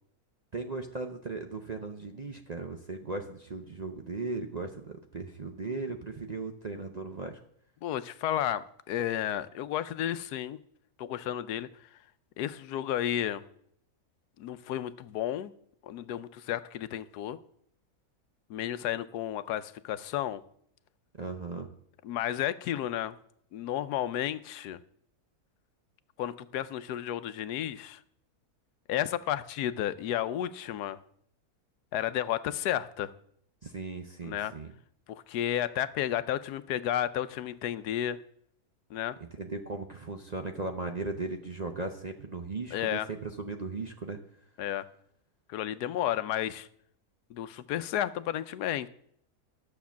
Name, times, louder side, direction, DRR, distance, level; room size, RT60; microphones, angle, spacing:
voice 1, 0.5-7.4 21.2-21.7 33.6-34.7 39.3-44.2, right 3 dB, 40° right, 5 dB, 0.6 m, -37 dB
voice 2, 7.8-10.6 11.0-11.7 12.4-13.4 14.4-15.5 15.8-17.4 18.5-20.4 22.0-23.2 23.5-24.8 26.2-28.0 28.9-31.0 31.9-33.1 34.2-34.5 35.1-38.2 38.9-39.2 42.7-43.1 44.6-44.8 45.5-46.7 47.3-48.9, left 11 dB, 85° left, 14 dB, 1.2 m, -32 dB
11.5 x 6.8 x 7.2 m, 0.67 s
omnidirectional pair, 1.6 m